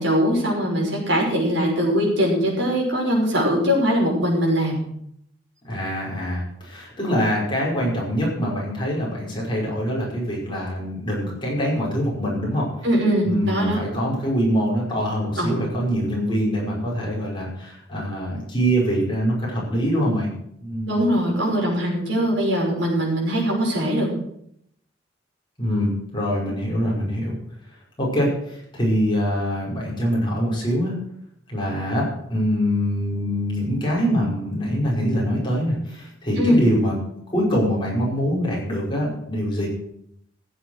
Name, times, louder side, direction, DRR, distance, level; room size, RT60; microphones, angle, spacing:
voice 1, 0.0-4.8 12.8-13.8 15.4-15.6 20.9-24.1 36.4-36.6, equal, 65° right, -2 dB, 5.7 m, -21 dB
voice 2, 5.6-12.7 13.2-20.3 20.6-21.0 25.6-27.3 28.0-30.9 31.5-37.0 37.3-39.7, equal, 25° left, -4 dB, 5.4 m, -24 dB
15.0 x 8.0 x 6.5 m, 0.72 s
head